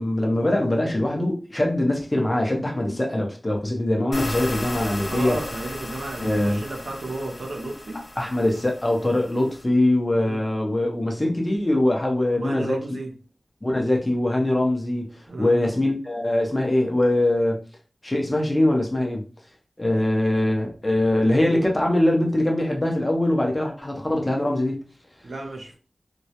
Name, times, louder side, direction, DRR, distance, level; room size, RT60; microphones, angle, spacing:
voice 1, 0.0-5.4 6.2-6.6 8.2-12.8 13.6-15.1 15.4-17.6 18.0-19.2 19.8-24.8, left 1 dB, 25° left, 0.6 m, -22 dB
sound 1, 4.1-9.6, left 1 dB, 75° left, 0.7 m, -36 dB
voice 2, 5.1-8.0 10.1-10.4 12.3-13.1 15.3-15.7 19.9-20.2 25.2-25.8, right 2 dB, 90° right, 0.5 m, -34 dB
2.2 x 2.0 x 2.7 m
wide cardioid pair, 80°, 0 cm